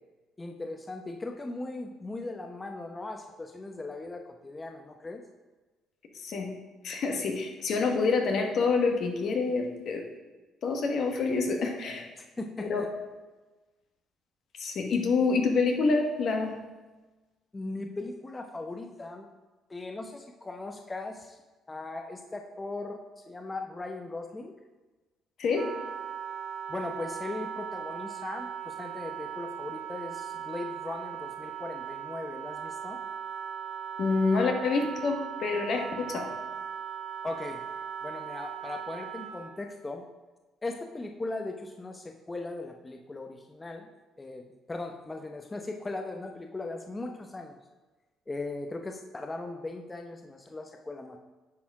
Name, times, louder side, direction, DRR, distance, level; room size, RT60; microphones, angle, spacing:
voice 1, 0.4-5.2 12.2-12.9 17.5-19.3 19.7-21.4 21.7-24.5 26.7-33.0 37.2-37.6 38.0-40.0 40.6-43.9 44.2-47.6 48.3-51.2, left 2 dB, 25° left, 4 dB, 0.7 m, -38 dB
voice 2, 6.8-10.0 10.6-12.0 12.6-12.8 14.6-16.5 25.4-25.7 34.0-36.3, left 4 dB, 60° left, 3 dB, 1.3 m, -27 dB
Wind instrument woodwind instrument, 25.5-39.6, right 8 dB, 55° right, 0.8 m, -38 dB
9.5 x 4.3 x 4.8 m, 1.2 s
supercardioid pair, 65°, 0 cm